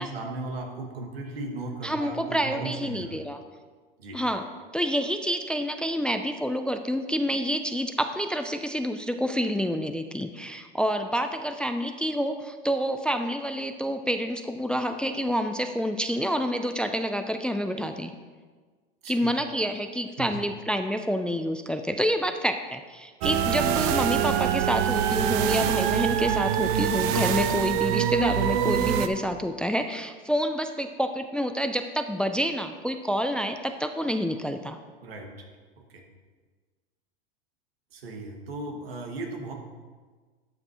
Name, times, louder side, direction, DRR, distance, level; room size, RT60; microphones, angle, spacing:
voice 1, 0.0-3.2 4.0-4.2 19.0-19.3 20.2-20.4 35.0-35.5 35.9-36.0 37.9-39.5, right 2 dB, 85° right, 1 dB, 2.0 m, -36 dB
voice 2, 1.8-3.4 4.1-4.5 4.7-18.1 19.1-34.8, equal, 5° left, 7 dB, 0.4 m, -28 dB
sound 1, 23.2-29.1, right 9 dB, 55° right, 0.8 m, -24 dB
12.5 x 8.5 x 3.1 m, 1.4 s
hypercardioid pair, 110°, 30 cm